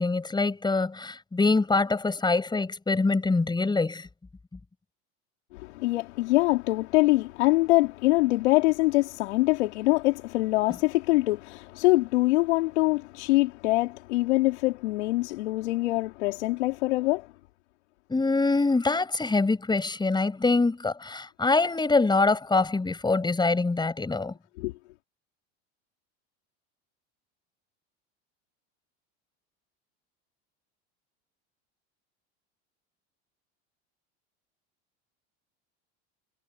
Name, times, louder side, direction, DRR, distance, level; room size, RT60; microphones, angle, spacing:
voice 1, 0.0-4.1 18.1-24.3, left 3 dB, 15° left, 7.2 m, -24 dB
voice 2, 5.5-17.3 24.6-24.7, left 20 dB, 85° left, 3.6 m, -24 dB
supercardioid pair, 115°, 33 cm